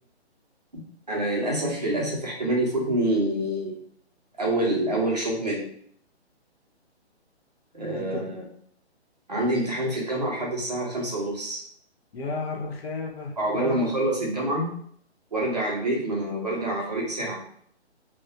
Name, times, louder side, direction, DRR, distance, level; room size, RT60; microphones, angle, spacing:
voice 1, 1.1-3.8 4.4-5.7 7.7-8.5 9.3-11.6 13.4-14.7 15.3-17.4, right 1 dB, 40° right, -3 dB, 0.5 m, -26 dB
voice 2, 7.9-8.3 12.1-13.9, left 3 dB, 65° left, 0 dB, 0.7 m, -34 dB
2.3 x 2.0 x 2.6 m, 0.63 s
hypercardioid pair, 180°, 34 cm